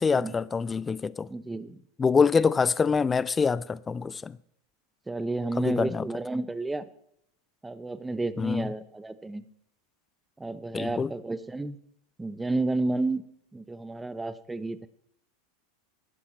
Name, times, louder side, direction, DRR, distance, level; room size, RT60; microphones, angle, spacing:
voice 1, 0.0-1.3 2.0-4.4 5.6-6.0 8.4-8.7 10.7-11.1, left 5 dB, 20° left, 0.4 m, -25 dB
voice 2, 1.3-1.8 5.1-6.9 7.6-9.4 10.4-11.8 12.2-13.2 13.5-14.9, right 2 dB, 10° right, 0.8 m, -31 dB
11.5 x 10.0 x 4.3 m
hypercardioid pair, 90°, 0 cm